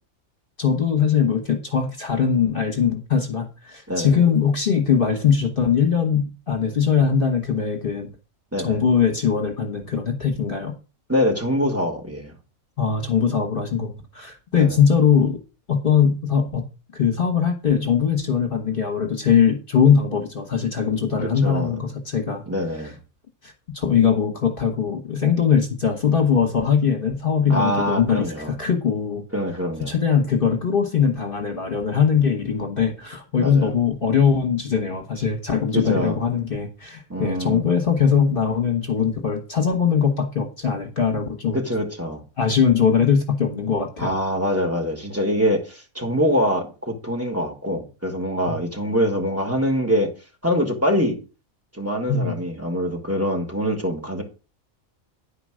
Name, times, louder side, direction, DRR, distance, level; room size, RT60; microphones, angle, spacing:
voice 1, 0.6-8.1 8.6-10.7 12.8-15.4 15.7-16.7 16.9-22.4 23.4-29.2 29.8-41.6 42.4-44.2 48.5-48.6 52.1-52.4, left 7 dB, 40° left, 1.5 m, -21 dB
voice 2, 11.1-12.3 14.5-14.8 21.2-21.7 22.5-23.0 27.5-28.6 29.3-30.0 33.4-33.7 35.7-36.2 37.1-37.6 41.5-42.2 44.0-50.1 50.4-51.2 51.7-54.2, equal, 10° right, 2.4 m, -24 dB
10.5 x 5.0 x 6.3 m
omnidirectional pair, 1.5 m